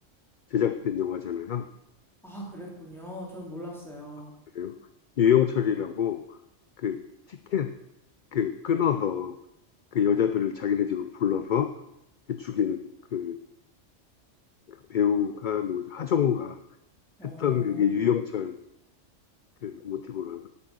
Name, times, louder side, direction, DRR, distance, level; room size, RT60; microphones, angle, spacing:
voice 1, 0.5-1.7 4.6-4.7 5.2-6.2 6.8-7.0 7.3-7.7 8.3-9.4 9.9-11.7 12.3-12.8 13.1-13.4 14.7-16.6 17.2-18.6 19.6-20.5, left 8 dB, 55° left, 9 dB, 0.6 m, -26 dB
voice 2, 2.2-4.3 17.2-18.0, equal, ahead, -4 dB, 3.5 m, -41 dB
11.5 x 8.4 x 6.3 m, 0.85 s
omnidirectional pair, 1.3 m